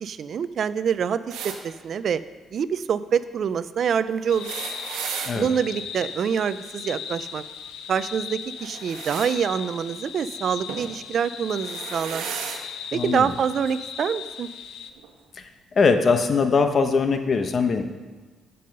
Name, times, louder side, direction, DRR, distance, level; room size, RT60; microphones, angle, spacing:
voice 1, 0.0-2.2 2.5-4.5 5.4-7.4 7.9-12.3 12.9-14.5, right 7 dB, 60° right, 14 dB, 0.4 m, -26 dB
sound 1, 1.3-1.6 4.2-5.3 8.6-9.3 10.7-10.9 11.5-12.6 13.7-13.8 15.0-15.1, right 6 dB, 85° right, 1.2 m, -34 dB
sound 2, 4.3-14.9, left 8 dB, 85° left, 0.6 m, -38 dB
voice 2, 12.9-13.3 15.3-15.5 15.7-17.8, left 4 dB, 45° left, 7 dB, 1.0 m, -21 dB
15.0 x 5.5 x 5.4 m, 1.4 s
cardioid pair, 90°, 0 cm